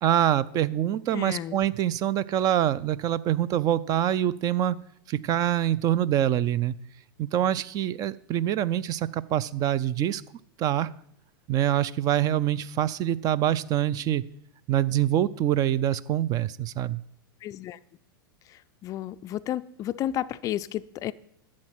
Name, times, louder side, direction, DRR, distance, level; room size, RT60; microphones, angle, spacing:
voice 1, 0.0-4.8 5.1-6.7 7.2-10.2 10.6-10.9 11.5-14.2 14.7-17.0, right 11 dB, 30° right, 19 dB, 0.4 m, -25 dB
voice 2, 1.1-1.7 17.4-17.8 18.5-21.1, left 12 dB, 30° left, 15 dB, 0.4 m, -32 dB
11.5 x 7.5 x 6.0 m, 0.69 s
figure-of-eight pair, 95°, 12 cm